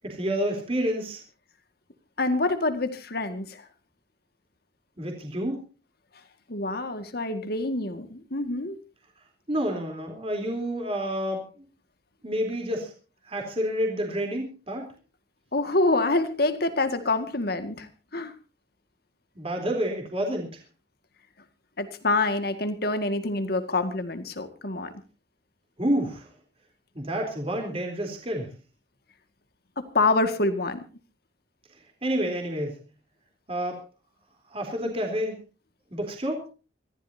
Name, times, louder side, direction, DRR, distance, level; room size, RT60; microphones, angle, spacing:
voice 1, 0.0-1.2 5.0-5.6 9.5-11.7 12.2-12.9 13.3-14.9 19.4-20.6 25.8-26.3 26.9-28.5 32.0-32.8 33.5-33.8 34.5-35.4 35.9-36.5, equal, 30° right, 2 dB, 3.7 m, -29 dB
voice 2, 2.2-3.7 6.5-8.8 15.5-18.3 21.8-24.9 29.8-30.8 34.8-34.9, left 2 dB, 55° left, 9 dB, 1.9 m, -26 dB
26.0 x 14.5 x 2.8 m, 0.33 s
head